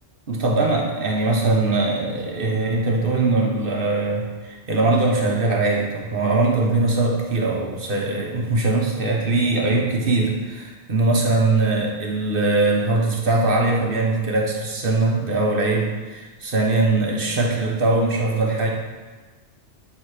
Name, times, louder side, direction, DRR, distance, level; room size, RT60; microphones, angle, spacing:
voice 1, 0.3-18.7, right 2 dB, 50° right, -1 dB, 1.2 m, -21 dB
8.4 x 3.3 x 4.8 m, 1.3 s
omnidirectional pair, 1.2 m